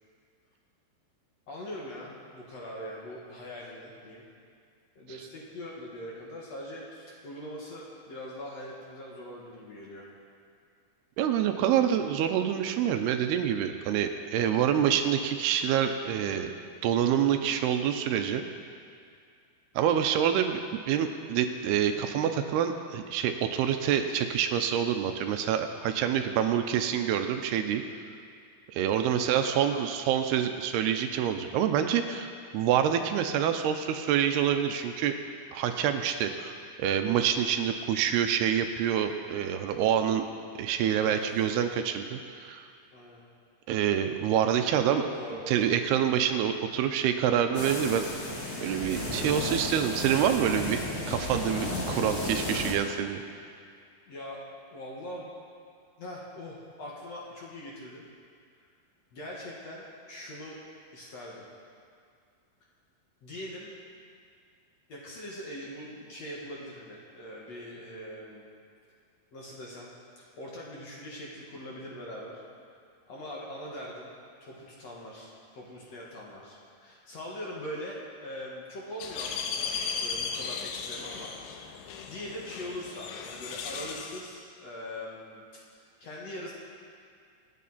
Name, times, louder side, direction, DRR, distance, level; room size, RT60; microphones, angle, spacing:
voice 1, 1.5-4.2 5.0-10.1 29.2-29.8 41.0-41.7 42.9-43.2 44.8-45.5 54.0-54.4 54.7-55.3 56.0-58.1 59.1-60.6 60.9-61.4 63.2-63.7 64.9-68.5 69.3-72.4 73.1-74.1 74.4-81.6 82.1-86.5, left 1 dB, 50° left, -4 dB, 2.3 m, -42 dB
voice 2, 11.2-16.5 16.8-18.4 19.8-20.6 20.9-27.8 28.7-35.1 35.5-40.2 40.6-42.7 43.7-45.0 45.5-48.1 48.6-50.8 51.1-53.2, right 9 dB, 85° right, 7 dB, 2.7 m, -27 dB
sound 1, 47.5-52.7, left 1 dB, 70° left, 0.7 m, -33 dB
sound 2, 79.0-84.3, left 6 dB, 85° left, 3.1 m, -36 dB
25.5 x 9.4 x 4.2 m, 2.2 s
omnidirectional pair, 4.7 m